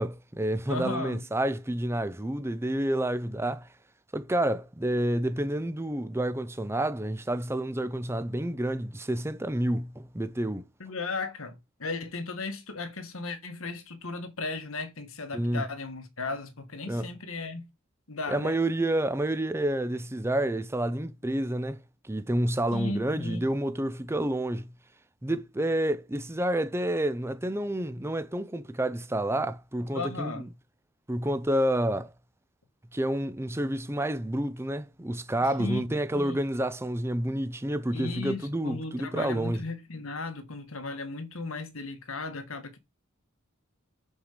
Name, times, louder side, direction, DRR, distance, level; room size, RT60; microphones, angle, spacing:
voice 1, 0.0-3.7 4.1-10.6 15.3-15.6 16.9-17.1 18.3-21.8 22.0-24.7 25.2-30.5 31.1-32.1 32.9-39.7, right 1 dB, 10° right, 0.5 m, -29 dB
voice 2, 0.7-1.2 10.8-17.6 18.1-18.6 22.7-23.4 29.9-30.5 35.4-35.8 36.1-36.4 37.9-42.8, left 3 dB, 70° left, 1.7 m, -36 dB
5.9 x 5.7 x 6.7 m
head